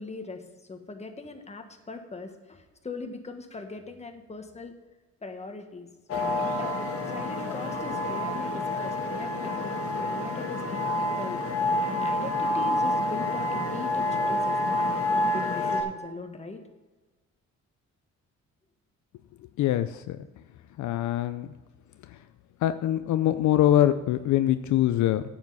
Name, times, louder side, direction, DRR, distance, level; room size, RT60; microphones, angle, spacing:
voice 1, 0.0-4.7 5.2-6.8 7.0-11.4 11.8-16.6, left 3 dB, 20° left, 5 dB, 1.4 m, -40 dB
sound 1, 6.1-15.8, left 1 dB, 50° left, 1.6 m, -28 dB
voice 2, 19.6-20.2 20.8-21.5 22.6-25.2, left 12 dB, 75° left, 11 dB, 0.5 m, -23 dB
9.3 x 7.3 x 5.6 m, 1.2 s
cardioid pair, 90°, 30 cm